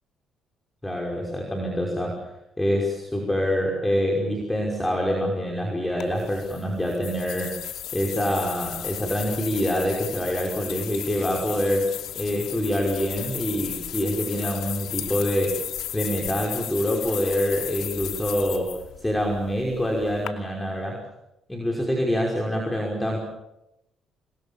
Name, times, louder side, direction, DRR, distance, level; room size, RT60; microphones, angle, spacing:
voice 1, 0.8-2.3 2.6-7.6 7.9-15.6 15.9-21.0 21.5-23.2, equal, 10° left, 0 dB, 5.6 m, -26 dB
sound 1, 6.0-20.3, left 11 dB, 80° left, 2.6 m, -35 dB
28.0 x 23.0 x 7.3 m, 0.90 s
cardioid pair, 90°, 0 cm